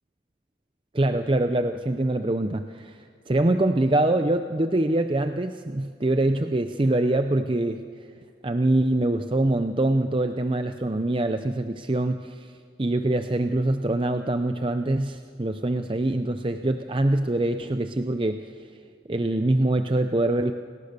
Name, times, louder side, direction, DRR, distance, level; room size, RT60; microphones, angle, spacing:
voice 1, 0.9-3.0 3.3-7.8 8.4-12.5 12.8-18.4 19.1-20.5, right 1 dB, 25° right, 8 dB, 0.6 m, -24 dB
29.0 x 18.0 x 6.8 m, 2.2 s
head